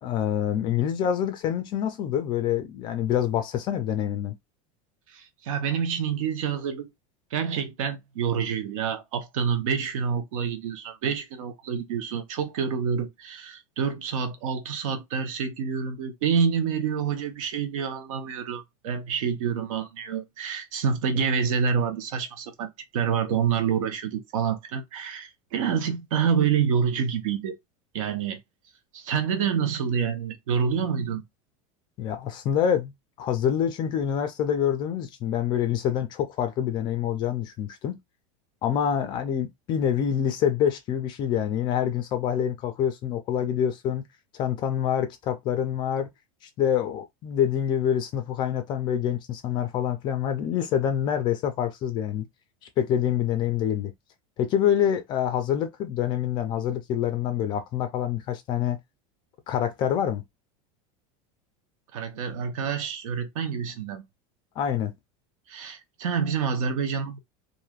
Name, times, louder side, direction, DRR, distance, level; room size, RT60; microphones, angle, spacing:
voice 1, 0.0-4.3 32.0-32.9 33.2-38.0 38.6-44.0 44.3-46.1 46.6-52.3 52.8-53.9 54.4-58.8 59.5-60.2 64.6-64.9, left 9 dB, 30° left, 0.4 m, -26 dB
voice 2, 5.1-6.9 7.3-27.6 27.9-28.4 28.9-31.2 61.9-64.0 65.5-67.2, right 7 dB, 90° right, 0.9 m, -27 dB
3.2 x 2.5 x 2.4 m
supercardioid pair, 170°, 17 cm